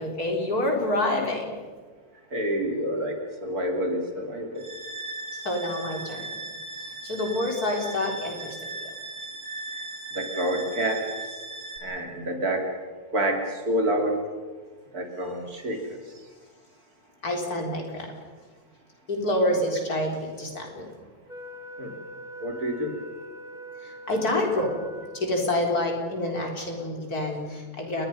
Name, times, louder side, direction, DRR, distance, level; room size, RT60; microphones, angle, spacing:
voice 1, 0.0-1.6 5.4-6.3 7.0-8.6 17.2-18.1 19.1-20.9 23.8-24.8 25.1-28.1, left 1 dB, 70° left, 1 dB, 4.5 m, -27 dB
voice 2, 2.3-4.7 10.1-11.1 11.8-12.7 13.1-14.2 14.9-16.0 21.8-22.0 22.4-23.0, right 1 dB, 70° right, 3 dB, 3.4 m, -28 dB
sound 1, 4.6-11.8, right 2 dB, 85° right, 3.8 m, -38 dB
Wind instrument woodwind instrument, 21.3-25.7, left 1 dB, 5° right, 1.0 m, -42 dB
30.0 x 21.0 x 5.5 m, 1.5 s
omnidirectional pair, 1.7 m